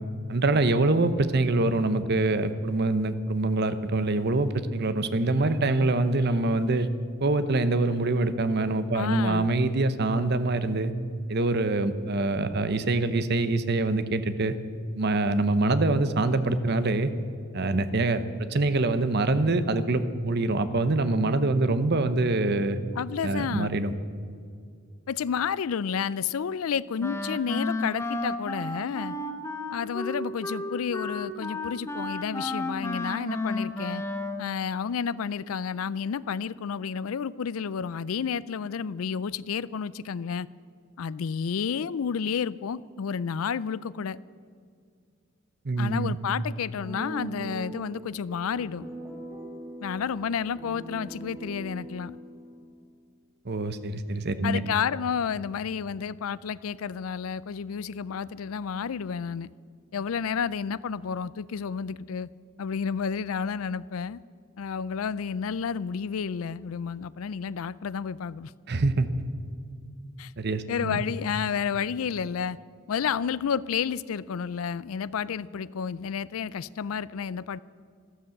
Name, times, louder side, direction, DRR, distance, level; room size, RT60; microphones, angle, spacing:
voice 1, 0.3-6.9 7.2-10.9 11.3-14.5 14.9-17.1 17.5-18.2 18.5-22.8 23.2-23.9 45.6-46.2 53.4-54.6 68.7-69.1 70.4-71.0, right 2 dB, 50° right, 11 dB, 0.9 m, -25 dB
voice 2, 8.9-9.5 22.9-23.8 25.1-29.2 29.7-34.0 34.4-40.5 41.0-44.2 45.8-48.9 49.8-52.2 54.4-59.5 59.9-62.3 62.6-64.2 64.6-68.5 70.2-70.3 70.7-72.6 72.9-77.6, left 6 dB, 85° left, 19 dB, 0.4 m, -31 dB
Wind instrument woodwind instrument, 27.0-34.5, left 2 dB, 15° left, 0.9 m, -32 dB
sound 1, 46.8-52.8, right 2 dB, 10° right, 2.1 m, -41 dB
13.0 x 13.0 x 7.9 m, 2.3 s
head